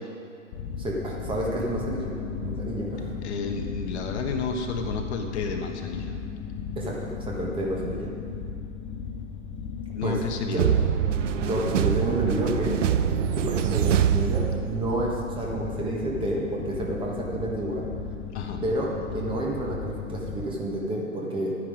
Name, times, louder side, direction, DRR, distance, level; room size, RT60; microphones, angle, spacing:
sound 1, 0.5-20.4, left 6 dB, 15° left, 0.4 m, -35 dB
voice 1, 0.8-3.1 6.8-8.1 10.0-10.7 11.3-12.7 13.3-17.9 18.6-21.6, right 1 dB, 10° right, -2 dB, 1.5 m, -30 dB
voice 2, 3.2-6.2 9.9-10.7 18.3-18.6, left 4 dB, 50° left, 4 dB, 1.3 m, -31 dB
sound 2, 10.6-15.1, right 10 dB, 60° right, 0.6 m, -24 dB
11.5 x 9.7 x 5.1 m, 2.6 s
hypercardioid pair, 120°, 42 cm